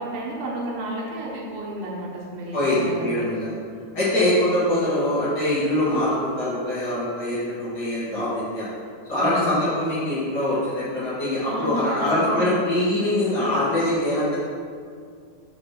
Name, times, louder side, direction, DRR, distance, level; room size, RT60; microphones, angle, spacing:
voice 1, 0.0-3.2 9.1-9.5 11.4-12.6, right 1 dB, 65° right, -3 dB, 2.5 m, -31 dB
voice 2, 2.5-3.6 3.9-8.7 9.1-14.4, left 1 dB, 90° left, -10 dB, 0.9 m, -23 dB
7.0 x 3.3 x 6.0 m, 2.1 s
omnidirectional pair, 4.5 m